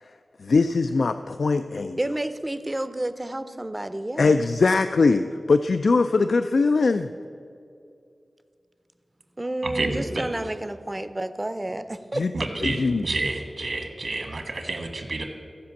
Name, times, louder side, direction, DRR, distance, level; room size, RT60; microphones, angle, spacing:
voice 1, 0.4-2.0 4.2-7.1 12.1-12.3 12.6-13.0, left 4 dB, 80° left, 9 dB, 0.3 m, -21 dB
voice 2, 2.0-4.4 9.4-12.2, right 1 dB, 25° right, 12 dB, 0.5 m, -30 dB
voice 3, 9.6-10.3 12.3-15.2, right 2 dB, 65° right, 4 dB, 1.6 m, -29 dB
15.0 x 5.2 x 7.1 m, 2.5 s
wide cardioid pair, 75°, 0 cm